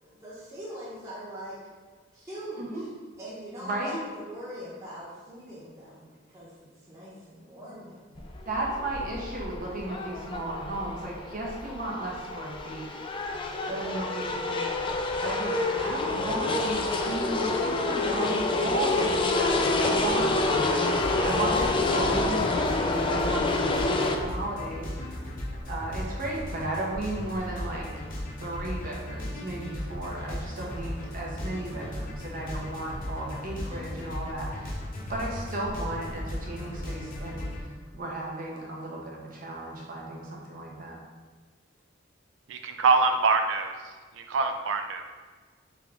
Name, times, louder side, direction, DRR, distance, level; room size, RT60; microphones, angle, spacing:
voice 1, 0.0-1.6 2.1-2.9 3.2-8.2, equal, 15° right, -12 dB, 1.0 m, -42 dB
voice 2, 3.6-4.0 8.5-12.9 13.7-14.9 15.2-20.3 21.2-25.1 25.7-27.9 28.4-34.8 35.1-41.0, right 2 dB, 45° right, -3 dB, 0.8 m, -34 dB
sound 1, 8.2-24.2, left 2 dB, 25° left, 0.3 m, -28 dB
sound 2, 20.9-37.6, left 1 dB, 45° left, 0.8 m, -36 dB
voice 3, 42.8-43.6 44.2-45.0, right 4 dB, 70° right, 5 dB, 0.4 m, -23 dB
3.6 x 3.6 x 3.5 m, 1.5 s
head